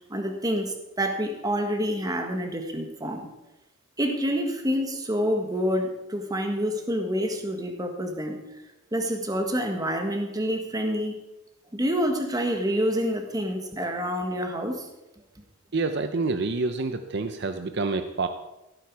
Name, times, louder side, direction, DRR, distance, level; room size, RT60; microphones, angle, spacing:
voice 1, 0.1-3.3 4.0-8.4 8.9-11.2 11.7-14.9, equal, 20° right, 4 dB, 1.5 m, -27 dB
voice 2, 15.7-18.3, right 3 dB, 60° right, 8 dB, 0.7 m, -27 dB
16.0 x 9.1 x 4.7 m, 0.96 s
head